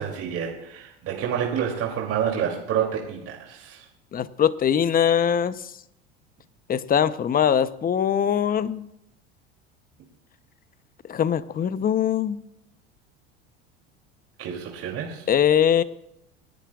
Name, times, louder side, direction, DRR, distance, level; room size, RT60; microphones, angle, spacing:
voice 1, 0.0-3.8 14.4-15.3, right 8 dB, 50° right, -1 dB, 3.0 m, -28 dB
voice 2, 4.1-5.6 6.7-8.9 11.1-12.4 15.3-15.8, left 9 dB, 30° left, 14 dB, 0.8 m, -22 dB
28.0 x 10.0 x 2.4 m, 0.82 s
hypercardioid pair, 85°, 30 cm